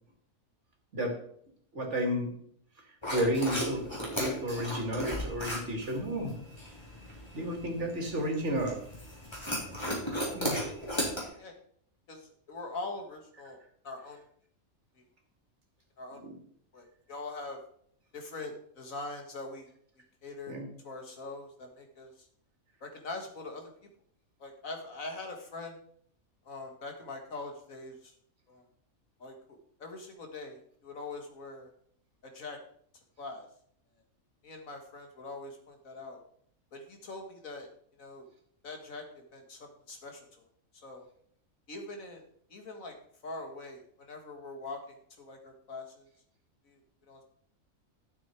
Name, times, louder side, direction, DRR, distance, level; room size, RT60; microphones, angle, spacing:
voice 1, 1.7-2.3 3.1-3.8 4.2-6.3 7.3-8.8 10.3-10.7 11.2-11.3 16.2-16.4 20.5-20.7, equal, 55° right, 2 dB, 2.7 m, -32 dB
sound 1, 3.0-11.2, equal, 20° left, 3.5 m, -36 dB
voice 2, 11.2-11.5 12.1-14.2 16.0-16.2 16.7-17.6 18.1-19.7 20.2-22.3 22.8-23.7 24.4-25.8 26.5-28.1 28.5-28.6 29.2-31.7 32.3-32.6 33.2-33.5 34.4-36.2 36.7-37.7 38.0-38.3 38.6-40.5 40.8-41.0 41.7-42.2 42.5-42.9 43.2-46.1 46.7-46.8 47.1-47.2, left 3 dB, 75° left, 3 dB, 2.2 m, -43 dB
12.5 x 7.2 x 4.6 m, 0.63 s
omnidirectional pair, 1.4 m